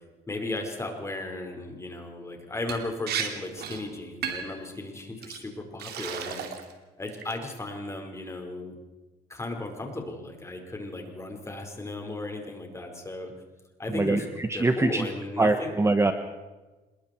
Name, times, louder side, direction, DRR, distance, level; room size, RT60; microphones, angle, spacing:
voice 1, 0.3-6.4 7.0-8.7 9.3-13.3 13.8-14.2 14.5-15.8, left 2 dB, 15° left, 3 dB, 5.0 m, -35 dB
Liquid, 2.7-2.8 3.1-3.3 3.6-3.8 4.2-4.6 5.2-5.4 5.8-6.7 7.1-7.5, right 8 dB, 70° right, 3.2 m, -33 dB
voice 2, 13.9-15.0 15.4-16.1, right 2 dB, 15° right, 8 dB, 1.3 m, -23 dB
26.5 x 21.5 x 4.6 m, 1.2 s
cardioid pair, 110°, 17 cm